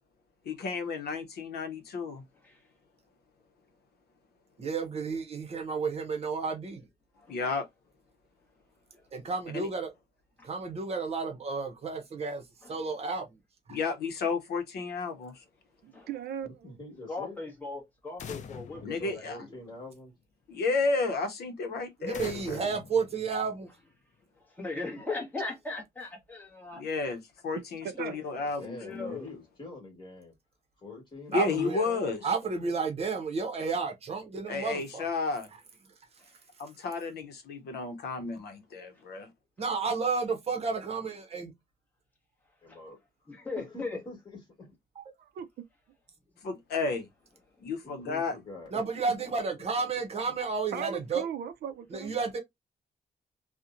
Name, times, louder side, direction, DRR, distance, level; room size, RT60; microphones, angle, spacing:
voice 1, 0.5-2.2 7.3-7.7 9.5-9.7 13.7-15.4 18.8-19.4 20.5-22.7 26.7-29.2 31.3-32.2 34.5-35.5 36.6-39.3 46.4-47.1 47.6-48.3, left 4 dB, 90° left, 0.7 m, -32 dB
voice 2, 4.6-6.8 9.1-9.9 10.4-12.4 12.7-13.2 13.7-13.8 22.0-23.7 31.3-31.8 32.2-35.1 39.6-41.5 48.7-51.2 51.9-52.4, right 4 dB, 40° right, 0.7 m, -31 dB
voice 3, 15.8-16.7 27.8-28.2 45.3-45.5 50.7-52.2, right 9 dB, 75° right, 0.4 m, -37 dB
voice 4, 16.4-17.4 18.7-20.1 28.1-30.3 30.8-32.2 42.6-44.7 47.8-48.8, left 2 dB, 30° left, 1.4 m, -45 dB
voice 5, 17.1-19.2 24.4-26.8 28.8-29.3 36.2-36.3 42.7-42.8 43.3-44.0, left 3 dB, 10° left, 1.0 m, -38 dB
sound 1, 18.2-20.0 22.1-23.9, left 7 dB, 50° left, 0.4 m, -45 dB
2.8 x 2.1 x 2.4 m
wide cardioid pair, 160°, 16 cm